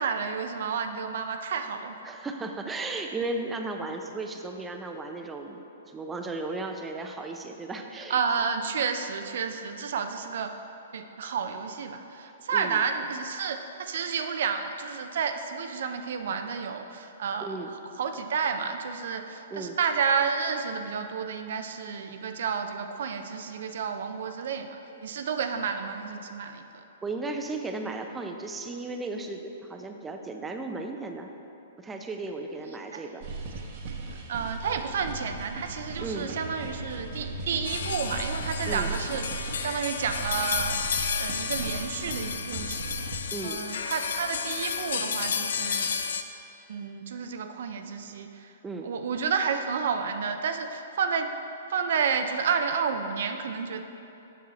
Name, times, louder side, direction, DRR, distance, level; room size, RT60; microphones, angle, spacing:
voice 1, 0.0-1.9 8.1-10.6 10.9-17.6 18.0-26.8 32.9-33.1 34.3-40.8 41.1-43.0 43.4-45.9 46.7-48.5 48.8-51.3 51.7-53.8, right 6 dB, 65° right, 7 dB, 0.4 m, -31 dB
voice 2, 2.0-8.2 12.2-12.8 17.4-17.7 19.5-19.8 27.0-31.3 31.8-33.2 36.0-36.3 38.7-38.9 43.3-43.6 48.6-48.9, right 3 dB, 15° right, 4 dB, 0.5 m, -35 dB
sound 1, 33.2-43.2, right 3 dB, 50° right, 0.9 m, -37 dB
sound 2, 37.6-46.2, left 6 dB, 70° left, 0.4 m, -32 dB
7.1 x 6.1 x 4.1 m, 2.9 s
hypercardioid pair, 130°, 0 cm